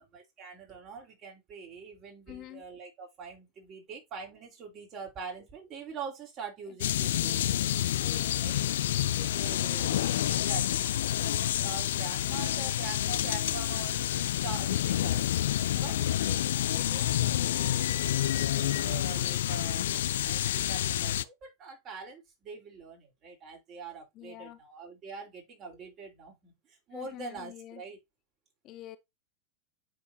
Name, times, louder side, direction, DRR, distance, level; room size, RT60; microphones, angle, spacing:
voice 1, 0.0-7.6 8.4-8.6 9.3-10.8 11.1-15.3 15.8-19.9 20.2-28.0, right 5 dB, 40° right, 3.9 m, -44 dB
voice 2, 2.3-2.6 8.0-8.4 9.1-10.0 15.7-16.1 24.1-24.6 26.9-27.8 28.6-29.0, left 13 dB, 45° left, 1.0 m, -47 dB
sound 1, 6.8-21.2, left 12 dB, 70° left, 0.4 m, -28 dB
10.0 x 4.3 x 2.8 m
hypercardioid pair, 95°, 0 cm